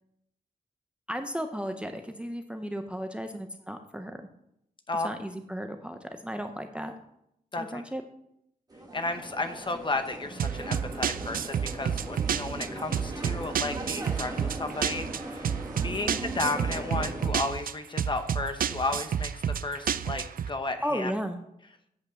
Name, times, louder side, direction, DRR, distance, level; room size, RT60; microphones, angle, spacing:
voice 1, 1.1-4.2 5.0-6.9 7.6-8.0 20.8-21.4, equal, 5° right, 6 dB, 0.6 m, -34 dB
sound 1, 8.7-17.3, right 1 dB, 25° right, 1.5 m, -39 dB
voice 2, 8.9-21.1, left 2 dB, 30° left, 8 dB, 0.9 m, -33 dB
sound 2, 10.4-20.5, right 8 dB, 70° right, 0.4 m, -30 dB
8.4 x 5.4 x 7.4 m, 0.77 s
wide cardioid pair, 155°, 15 cm